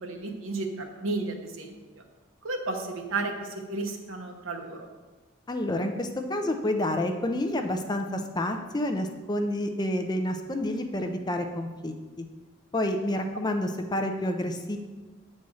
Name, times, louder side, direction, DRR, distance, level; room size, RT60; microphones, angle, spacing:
voice 1, 0.0-1.7 2.4-4.9, right 3 dB, 75° right, 3 dB, 1.1 m, -33 dB
voice 2, 5.5-12.2 12.7-14.8, left 1 dB, 20° left, 5 dB, 0.5 m, -29 dB
8.4 x 4.3 x 6.2 m, 1.3 s
head